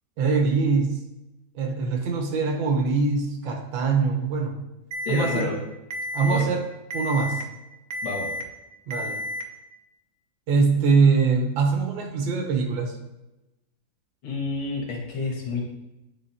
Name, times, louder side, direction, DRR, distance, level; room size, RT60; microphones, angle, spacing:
voice 1, 0.2-1.0 1.5-4.6 5.1-5.5 6.1-6.6 6.9-7.4 8.9-9.2 10.5-13.0, right 4 dB, 90° right, 3 dB, 1.7 m, -23 dB
Alarm, 4.9-5.4 5.9-6.4 6.9-7.4 7.9-8.4 8.9-9.4, left 1 dB, 60° right, 1.1 m, -31 dB
voice 2, 5.1-5.6 6.3-6.5 8.0-8.3 14.2-15.6, left 3 dB, 85° left, -2 dB, 2.2 m, -29 dB
10.0 x 3.9 x 2.8 m, 0.96 s
omnidirectional pair, 2.1 m